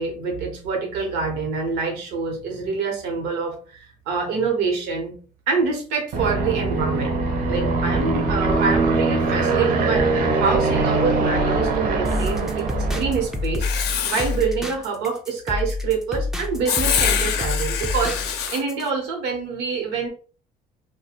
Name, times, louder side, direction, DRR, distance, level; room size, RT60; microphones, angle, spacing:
voice 1, 0.0-3.8 4.1-5.1 5.5-7.2 7.5-13.7 14.0-18.2 18.5-20.1, right 4 dB, 90° right, 2 dB, 0.8 m, -26 dB
Aircraft, 6.1-13.5, right 3 dB, 60° right, 0.6 m, -22 dB
sound 1, 12.0-18.9, left 3 dB, 5° right, 0.3 m, -28 dB
Writing, 13.6-14.4 16.7-18.6, left 8 dB, 75° left, 0.5 m, -25 dB
2.4 x 2.1 x 2.8 m, 0.39 s
cardioid pair, 110°, 17 cm